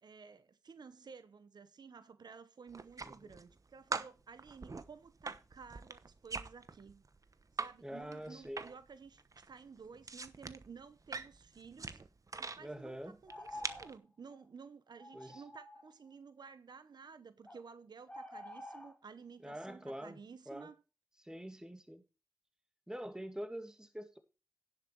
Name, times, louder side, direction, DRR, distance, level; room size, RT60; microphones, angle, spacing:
voice 1, 0.0-7.0 7.5-12.0 12.4-20.8, right 5 dB, 75° right, 0.8 m, -54 dB
sound 1, 2.7-3.6 3.9-7.7 8.0-8.9 9.2-12.6 13.2-13.9, right 4 dB, 50° right, 1.0 m, -43 dB
voice 2, 7.8-8.7 12.6-13.2 15.1-15.4 19.4-20.2 20.5-20.7 21.2-22.0 22.9-24.2, equal, 10° right, 2.3 m, -45 dB
sound 2, 13.3-13.9 14.3-14.4 15.0-15.9 17.4-17.6 18.1-18.9, left 1 dB, 15° left, 2.7 m, -49 dB
10.5 x 7.6 x 4.6 m
cardioid pair, 50°, 7 cm